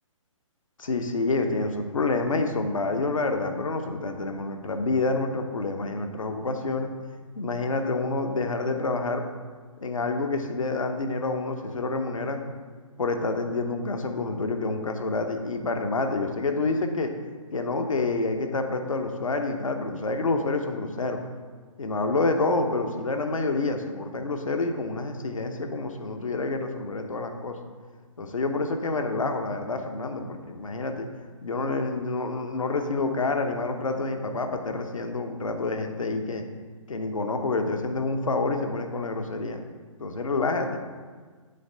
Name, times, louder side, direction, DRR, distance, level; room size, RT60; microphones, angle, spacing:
voice 1, 0.8-6.9 7.4-9.2 9.8-12.4 13.0-17.1 17.5-21.2 21.8-27.6 28.2-31.1 31.4-36.4 36.9-39.6 40.0-40.8, left 3 dB, 75° left, 5 dB, 0.8 m, -28 dB
7.7 x 3.2 x 5.4 m, 1.5 s
figure-of-eight pair, 135°, 17 cm